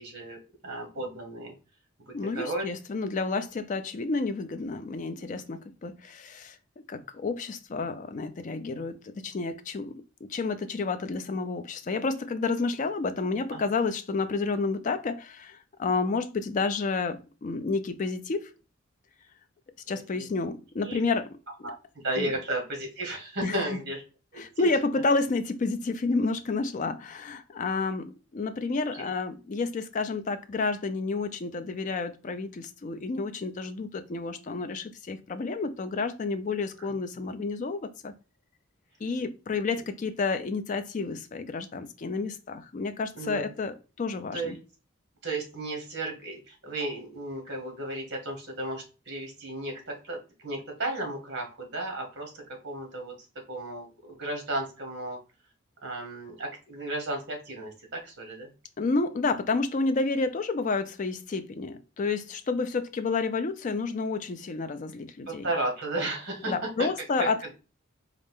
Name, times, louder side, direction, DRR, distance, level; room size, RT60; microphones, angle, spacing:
voice 1, 0.0-1.5 2.1-2.7 13.5-13.6 19.9-20.3 20.8-21.0 21.6-24.0 24.3-24.7 28.8-29.0 43.1-43.4 44.3-44.6 45.2-53.1 53.5-55.2 55.8-58.5 65.3-66.9 67.2-67.5, right 2 dB, 55° right, 1.2 m, -34 dB
voice 2, 2.1-6.6 6.9-9.9 10.3-18.5 19.9-21.3 21.6-21.7 22.2-22.3 23.4-23.8 24.4-38.1 39.0-44.6 58.8-65.5 66.5-67.4, left 3 dB, 35° left, 0.4 m, -30 dB
4.2 x 2.4 x 3.5 m
head